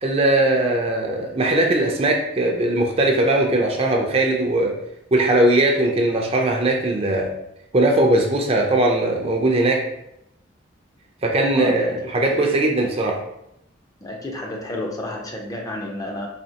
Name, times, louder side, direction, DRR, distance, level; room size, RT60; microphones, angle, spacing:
voice 1, 0.0-4.8 5.1-7.3 7.7-9.9 11.2-13.2, right 1 dB, 30° right, 1 dB, 0.5 m, -19 dB
voice 2, 11.6-12.4 14.0-16.3, left 1 dB, 15° left, 0 dB, 0.5 m, -31 dB
4.2 x 2.8 x 2.8 m, 0.79 s
head